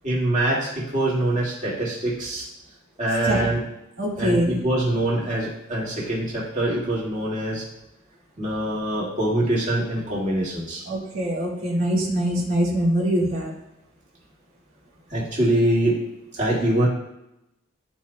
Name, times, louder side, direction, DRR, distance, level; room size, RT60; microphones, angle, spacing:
voice 1, 0.0-2.5 3.0-3.6 4.2-7.6 8.4-10.8 15.1-16.0 16.4-16.9, right 1 dB, 35° right, -6 dB, 2.0 m, -24 dB
voice 2, 4.0-4.6 10.9-13.5, right 1 dB, 85° right, -5 dB, 1.9 m, -23 dB
12.0 x 4.4 x 2.2 m, 0.89 s
head